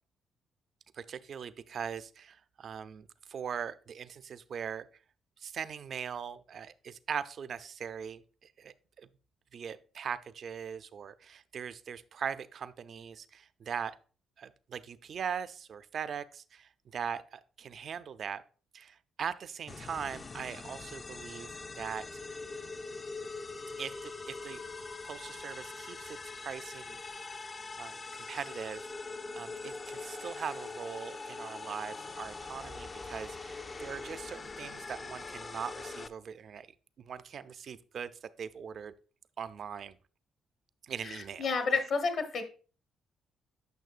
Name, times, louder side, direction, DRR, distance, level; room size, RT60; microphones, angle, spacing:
voice 1, 0.9-4.9 5.4-9.1 9.5-14.0 14.4-18.4 18.7-21.5 21.8-22.0 23.8-24.6 25.0-27.3 27.8-28.9 29.3-36.7 37.0-38.9 39.4-40.0 40.8-41.5, right 7 dB, 55° right, 13 dB, 0.4 m, -41 dB
sound 1, 19.7-36.1, left 3 dB, 30° left, 0.4 m, -43 dB
voice 2, 41.0-42.4, left 4 dB, 65° left, 6 dB, 1.1 m, -30 dB
9.3 x 5.9 x 2.4 m, 0.38 s
cardioid pair, 90°, 0 cm